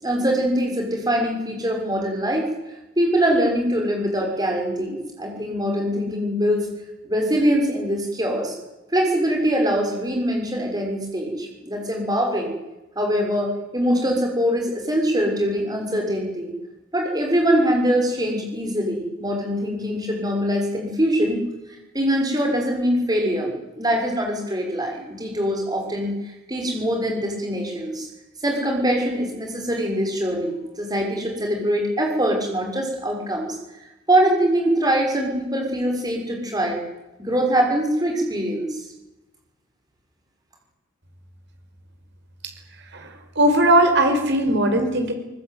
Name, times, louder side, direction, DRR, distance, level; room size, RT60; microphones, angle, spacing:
voice 1, 0.0-2.5 3.0-6.7 7.0-8.6 8.9-12.5 13.0-16.5 16.9-21.4 21.9-28.1 28.4-33.6 34.1-36.8 37.2-38.9, equal, 20° right, 2 dB, 6.2 m, -23 dB
voice 2, 42.9-45.1, right 1 dB, 55° right, 5 dB, 5.4 m, -19 dB
22.5 x 19.5 x 9.5 m, 1.0 s
head